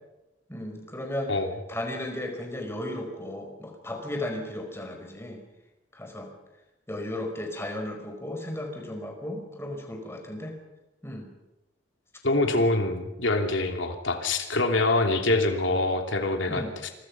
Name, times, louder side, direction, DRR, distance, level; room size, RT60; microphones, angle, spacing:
voice 1, 0.5-1.3 1.7-5.4 5.9-6.3 6.9-10.6 11.0-11.3 16.5-16.7, left 1 dB, 15° left, 3 dB, 4.8 m, -35 dB
voice 2, 12.2-16.6, left 2 dB, 90° left, 4 dB, 3.1 m, -25 dB
27.0 x 23.5 x 6.1 m, 0.98 s
head